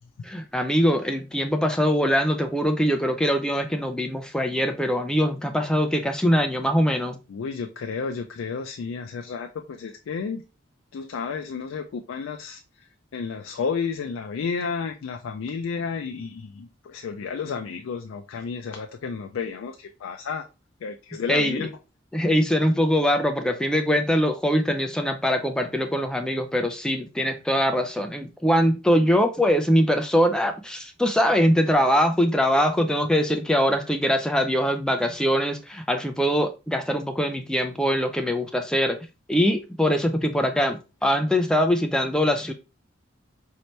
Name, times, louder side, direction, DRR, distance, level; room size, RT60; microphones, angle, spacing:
voice 1, 0.2-7.2 21.3-21.7 22.1-39.0 39.3-42.5, equal, 5° left, 6 dB, 0.3 m, -22 dB
voice 2, 7.3-10.4 10.9-12.9 13.1-20.5 20.8-21.7, left 5 dB, 80° left, 6 dB, 0.4 m, -32 dB
4.2 x 2.8 x 3.1 m, 0.29 s
head